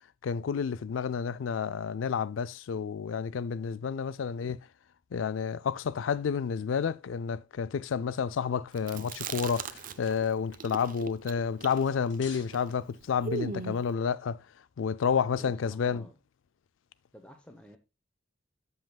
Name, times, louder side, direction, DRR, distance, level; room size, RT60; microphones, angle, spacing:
voice 1, 0.2-4.6 5.1-14.4 14.8-16.0, left 6 dB, 85° left, 0.4 m, -30 dB
Chewing mastication, 8.8-10.2 10.5-13.9, right 5 dB, 45° right, 0.6 m, -38 dB
sound 1, 9.3-13.2, left 5 dB, 70° left, 1.9 m, -53 dB
voice 2, 15.3-16.2 17.1-17.8, equal, 5° left, 0.9 m, -51 dB
13.0 x 5.5 x 2.3 m
head